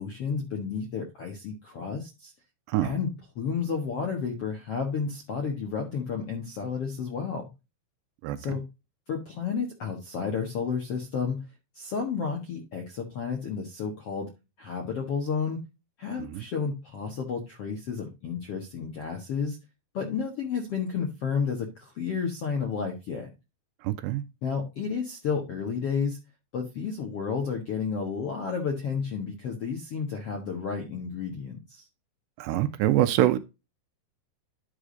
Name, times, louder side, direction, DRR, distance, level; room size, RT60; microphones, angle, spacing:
voice 1, 0.0-2.3 2.8-7.5 8.4-8.6 9.1-11.4 11.7-14.3 14.6-15.6 16.0-19.6 19.9-23.3 24.4-26.2 26.5-31.9, left 6 dB, 65° left, 1.4 m, -31 dB
voice 2, 8.2-8.6 16.2-16.4 23.8-24.2 32.4-33.4, right 13 dB, 80° right, 2.9 m, -25 dB
11.0 x 4.9 x 3.8 m
omnidirectional pair, 5.0 m